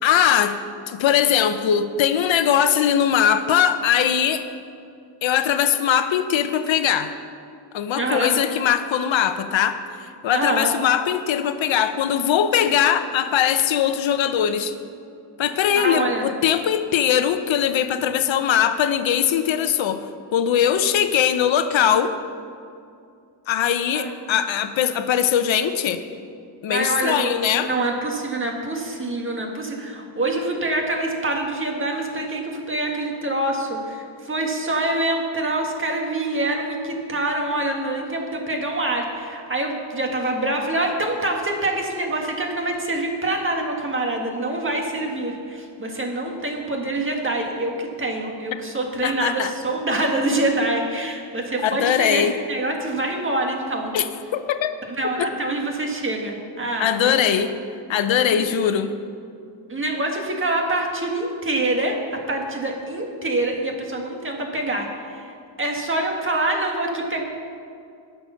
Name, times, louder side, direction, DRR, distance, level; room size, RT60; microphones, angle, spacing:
voice 1, 0.0-0.6 0.9-4.4 5.2-7.1 7.7-14.7 15.4-20.0 20.3-22.1 23.5-26.0 26.6-27.7 49.0-49.5 51.6-52.3 53.9-54.7 55.2-55.3 56.8-57.5 57.9-58.9, left 9 dB, 70° left, 9 dB, 0.8 m, -21 dB
voice 2, 7.9-8.3 10.3-10.7 15.7-16.3 23.9-24.1 26.7-53.9 54.9-57.2 58.4-58.5 59.7-67.2, right 2 dB, 25° right, 1 dB, 1.7 m, -25 dB
19.5 x 6.8 x 5.7 m, 2.4 s
wide cardioid pair, 155°, 47 cm